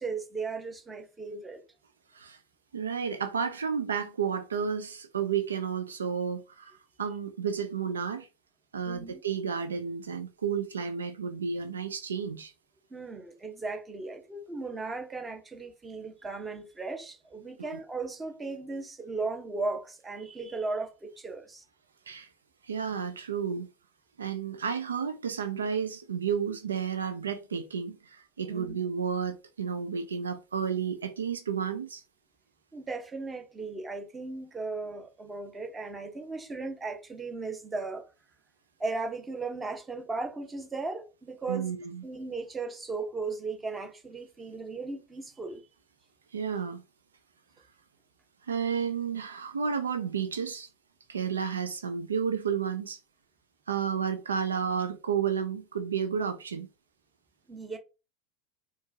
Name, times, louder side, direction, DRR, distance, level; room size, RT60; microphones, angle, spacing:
voice 1, 0.0-1.6 8.8-9.2 12.9-21.6 28.5-28.8 32.7-38.1 38.8-41.7 42.0-45.6 57.5-57.8, right 3 dB, 20° right, 1.0 m, -36 dB
voice 2, 2.7-8.3 8.7-12.5 17.6-17.8 22.1-22.3 22.6-23.7 24.2-32.0 41.5-42.0 46.3-46.8 48.5-50.7 51.1-53.0 53.7-56.7, right 7 dB, 85° right, 0.4 m, -32 dB
4.4 x 2.3 x 2.8 m
hypercardioid pair, 85°, 0 cm